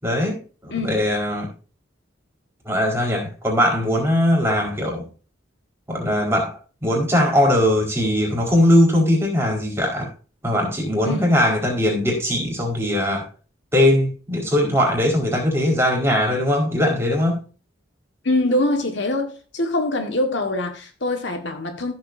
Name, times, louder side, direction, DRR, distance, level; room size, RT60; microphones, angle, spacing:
voice 1, 0.0-1.5 2.6-5.1 5.9-10.1 10.4-13.3 13.7-17.4, left 1 dB, 15° right, 4.7 m, -20 dB
voice 2, 18.2-22.0, left 1 dB, 60° left, 1.7 m, -23 dB
15.0 x 7.9 x 2.7 m
head